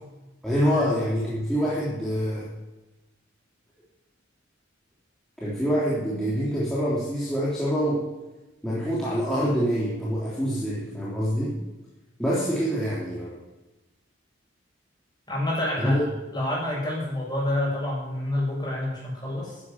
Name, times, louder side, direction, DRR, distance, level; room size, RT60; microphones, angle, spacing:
voice 1, 0.4-2.5 5.4-8.1 8.6-11.5 12.2-13.4 15.8-16.0, equal, 5° left, -8 dB, 3.4 m, -26 dB
voice 2, 15.3-16.0 16.3-19.6, left 1 dB, 20° left, -3 dB, 6.9 m, -28 dB
14.0 x 10.5 x 7.3 m, 1.0 s
head